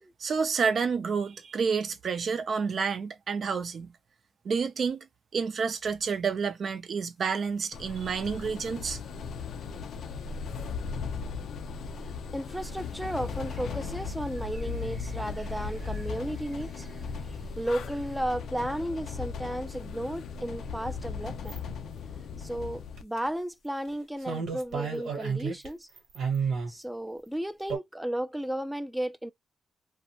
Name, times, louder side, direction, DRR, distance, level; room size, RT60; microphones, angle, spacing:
voice 1, 0.2-3.9 4.4-5.1 5.3-9.0, right 5 dB, 60° right, 0.5 m, -29 dB
sound 1, 7.7-23.0, left 5 dB, 80° left, 0.4 m, -37 dB
voice 2, 12.3-16.8 17.6-21.6 22.4-25.9 26.7-29.3, right 1 dB, 5° right, 0.4 m, -34 dB
sound 2, 12.6-18.2, right 2 dB, 30° right, 0.8 m, -47 dB
sound 3, 21.5-21.6 23.0-23.3 23.9-24.0 24.2-25.7 26.0-26.7 27.7-27.8, right 6 dB, 85° right, 1.1 m, -31 dB
2.4 x 2.1 x 2.8 m
cardioid pair, 95°, 0 cm